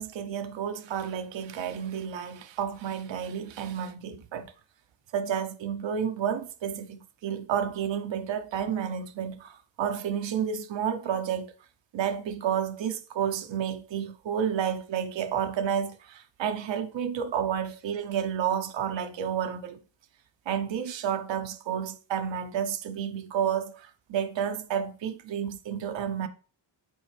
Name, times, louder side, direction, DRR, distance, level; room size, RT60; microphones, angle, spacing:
voice 1, 0.0-4.5 5.1-11.5 11.9-19.8 20.5-26.3, right 8 dB, 70° right, 0.8 m, -31 dB
9.4 x 4.2 x 3.3 m
wide cardioid pair, 150°, 46 cm